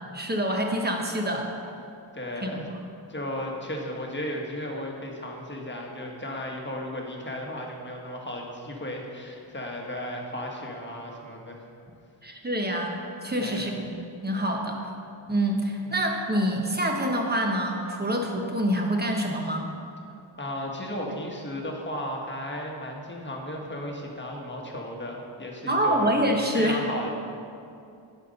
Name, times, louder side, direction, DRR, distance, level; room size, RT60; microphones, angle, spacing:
voice 1, 0.1-1.5 2.4-2.6 12.2-13.9 14.2-14.8 15.3-19.7 25.7-26.8, equal, 20° right, 1 dB, 1.1 m, -26 dB
voice 2, 2.1-2.7 3.1-11.6 13.4-13.8 20.4-26.1 26.5-27.1, left 1 dB, 25° left, 0 dB, 1.4 m, -35 dB
10.5 x 4.4 x 5.3 m, 2.5 s
wide cardioid pair, 70°, 48 cm